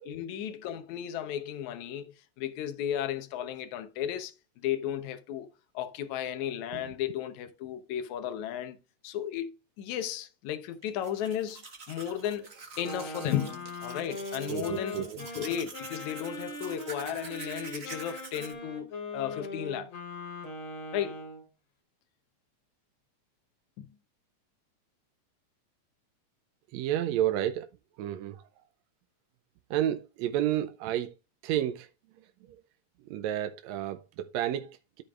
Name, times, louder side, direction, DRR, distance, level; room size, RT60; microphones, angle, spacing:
voice 1, 0.0-5.5 5.7-8.8 9.0-9.5 9.8-19.9 20.9-21.2 23.8-23.9, left 10 dB, 75° left, 2.2 m, -34 dB
Domestic sounds home sounds, 10.8-18.5, right 4 dB, 55° right, 0.7 m, -46 dB
Wind instrument woodwind instrument, 12.8-21.4, left 2 dB, 55° left, 3.4 m, -40 dB
voice 2, 14.5-15.2 26.7-27.7 28.0-28.6 29.7-31.1 31.4-31.9 32.2-32.6 33.1-35.0, right 12 dB, 75° right, 1.7 m, -31 dB
14.0 x 5.1 x 2.4 m
omnidirectional pair, 3.6 m